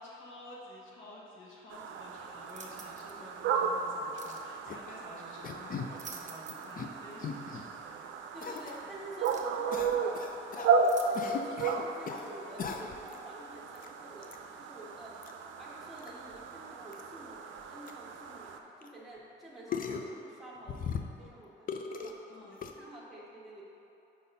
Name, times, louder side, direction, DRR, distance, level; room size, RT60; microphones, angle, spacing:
voice 1, 0.0-8.1 22.3-22.6, left 1 dB, 80° left, -3 dB, 1.2 m, -51 dB
sound 1, 1.7-18.6, right 5 dB, 75° right, 0.5 m, -35 dB
sound 2, 2.5-3.2 4.2-4.5 5.7-6.8 7.1-7.2 8.5-8.6 9.2-9.6 10.8-11.5 12.2-12.3, right 5 dB, 40° right, 0.7 m, -49 dB
sound 3, 4.7-4.9 5.4-5.9 6.5-6.9 7.2-7.6 8.4-8.8 9.7-10.7 11.1-12.2 12.6-13.2 13.7-13.9 14.2-14.4 15.2-15.3 16.0-16.1 16.3-16.4 16.9-17.0 17.6-17.7 17.9-18.0 18.8-18.9 19.7-20.1 20.7-21.3 21.7-22.1 22.6-22.7, left 6 dB, 45° left, 0.5 m, -38 dB
voice 2, 8.3-10.2 10.5-10.8 11.0-15.2 15.6-23.6, right 1 dB, ahead, -7 dB, 1.5 m, -50 dB
5.0 x 4.1 x 5.4 m, 2.8 s
cardioid pair, 90°, 20 cm